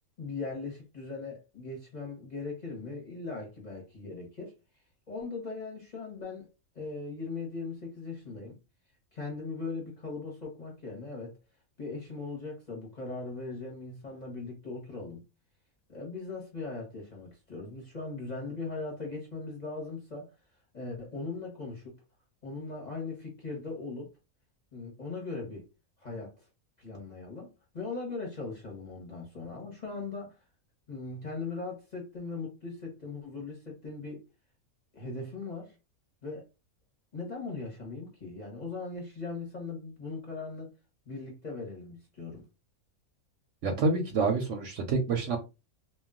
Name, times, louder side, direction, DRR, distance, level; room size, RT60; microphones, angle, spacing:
voice 1, 0.2-4.5 5.1-6.5 6.7-8.6 9.1-11.4 11.8-15.2 15.9-20.3 20.7-22.0 22.4-24.1 24.7-25.7 26.0-26.3 26.8-30.4 30.9-34.2 34.9-35.8 36.2-36.5 37.1-40.7 41.1-42.4, left 3 dB, 35° left, 0.8 m, -39 dB
voice 2, 43.6-45.4, right 4 dB, 65° right, 0.8 m, -27 dB
2.3 x 2.2 x 3.5 m
omnidirectional pair, 1.5 m